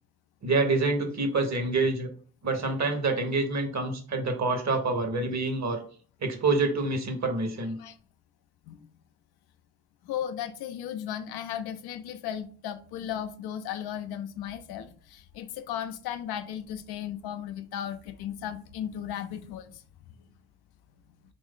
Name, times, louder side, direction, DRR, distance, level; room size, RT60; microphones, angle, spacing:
voice 1, 0.4-2.1 2.4-5.8 6.2-7.8, right 3 dB, 45° right, 1.1 m, -27 dB
voice 2, 10.0-19.8, left 10 dB, 70° left, 0.5 m, -36 dB
3.1 x 2.6 x 3.7 m
hypercardioid pair, 45°, 39 cm